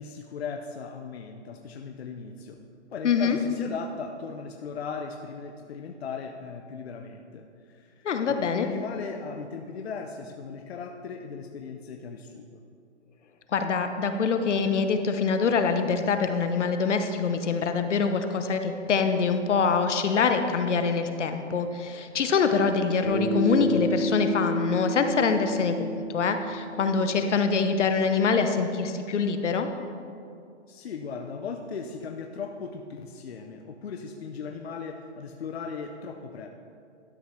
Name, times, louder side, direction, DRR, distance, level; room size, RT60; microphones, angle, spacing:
voice 1, 0.0-2.6 2.9-12.6 30.7-36.5, left 5 dB, 60° left, 4 dB, 0.7 m, -38 dB
voice 2, 3.0-3.4 8.0-8.7 13.5-29.7, left 5 dB, 75° left, 7 dB, 1.0 m, -25 dB
Bass guitar, 23.0-27.4, equal, 15° left, 1.0 m, -31 dB
12.0 x 5.0 x 5.6 m, 2.4 s
hypercardioid pair, 180°, 36 cm